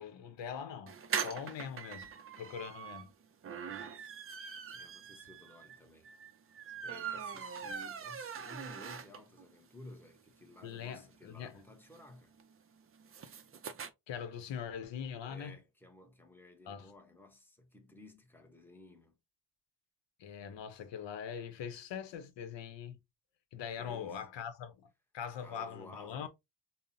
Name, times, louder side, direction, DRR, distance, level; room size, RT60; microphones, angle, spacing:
voice 1, 0.0-2.1 2.4-3.1 10.6-11.6 14.1-15.6 16.7-16.9 20.2-23.0 23.5-24.9 25.1-26.3, left 8 dB, 90° left, 0.8 m, -42 dB
sound 1, 0.9-9.4 9.8-9.9 10.2-10.3 10.5-13.9, right 7 dB, 35° right, 0.4 m, -42 dB
voice 2, 3.8-4.2 4.7-6.1 6.8-12.4 15.3-19.2 23.8-24.3 25.4-26.3, left 1 dB, 5° left, 0.7 m, -55 dB
5.3 x 2.0 x 2.6 m
wide cardioid pair, 155°, 43 cm